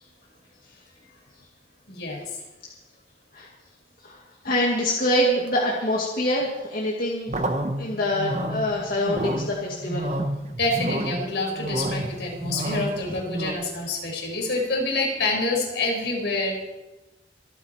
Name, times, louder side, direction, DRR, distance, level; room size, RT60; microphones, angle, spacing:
voice 1, 1.9-2.4 10.6-16.5, left 2 dB, 70° left, 0 dB, 4.9 m, -27 dB
voice 2, 4.4-7.4 7.8-10.1, left 1 dB, 50° left, -3 dB, 2.2 m, -25 dB
sound 1, 7.3-13.5, right 1 dB, 40° right, 1.1 m, -30 dB
26.0 x 8.7 x 4.5 m, 1.0 s
head